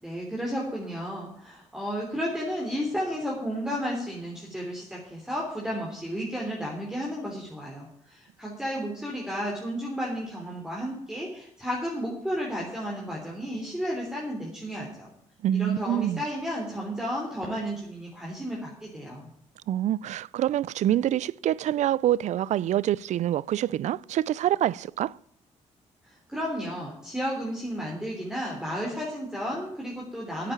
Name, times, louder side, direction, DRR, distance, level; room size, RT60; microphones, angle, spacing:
voice 1, 0.0-15.1 15.5-19.3 26.1-30.5, equal, 5° right, 3.5 m, -33 dB
voice 2, 15.4-16.2 19.7-25.2, right 12 dB, 70° right, 0.4 m, -26 dB
9.0 x 8.7 x 9.3 m
cardioid pair, 95°, 13 cm